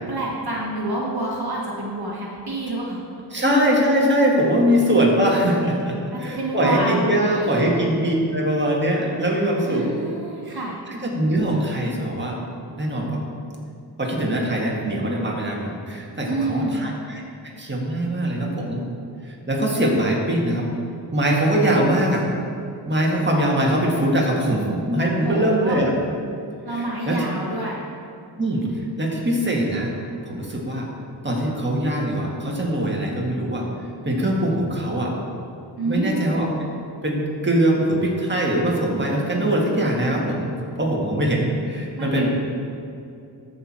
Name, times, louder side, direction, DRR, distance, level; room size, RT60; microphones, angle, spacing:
voice 1, 0.1-3.0 3.4-3.5 6.1-7.7 9.6-10.8 16.2-16.9 25.2-25.8 26.6-27.8 35.8-36.3 41.9-42.3, right 2 dB, 55° right, -3 dB, 1.5 m, -27 dB
voice 2, 3.3-9.9 10.9-12.4 12.8-13.2 14.0-18.8 19.2-20.7 21.1-22.3 22.9-25.9 26.7-27.2 28.4-29.9 30.2-30.9 31.2-33.6 34.0-35.1 35.8-36.5 37.0-42.3, right 1 dB, 25° right, -2 dB, 1.7 m, -22 dB
13.5 x 4.5 x 4.3 m, 2.7 s
cardioid pair, 55°, 44 cm